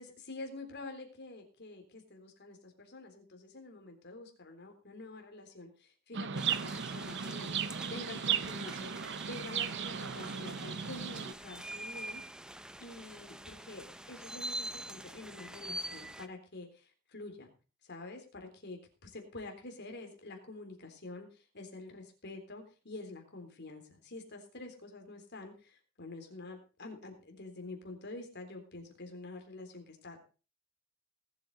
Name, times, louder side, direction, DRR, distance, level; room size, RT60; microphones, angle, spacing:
voice 1, 0.0-7.5 7.9-8.9 9.3-12.2 12.8-17.5 17.8-30.2, left 2 dB, 55° left, 4 dB, 3.6 m, -47 dB
Chirp tweet, 6.1-11.3, right 8 dB, 60° right, 0.7 m, -36 dB
sound 1, 6.4-16.3, right 1 dB, 5° right, 0.7 m, -45 dB
19.5 x 8.5 x 4.0 m, 0.34 s
head